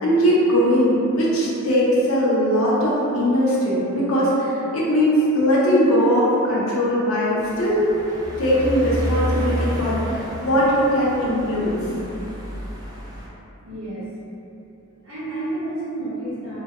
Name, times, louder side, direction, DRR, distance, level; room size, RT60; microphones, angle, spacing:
voice 1, 0.0-7.9 8.4-11.8, equal, 85° left, -6 dB, 0.7 m, -20 dB
sound 1, 7.4-13.3, equal, 20° right, 0.4 m, -30 dB
voice 2, 13.6-14.1 15.0-16.6, right 2 dB, 75° right, -11 dB, 1.2 m, -30 dB
2.7 x 2.2 x 3.0 m, 2.9 s
head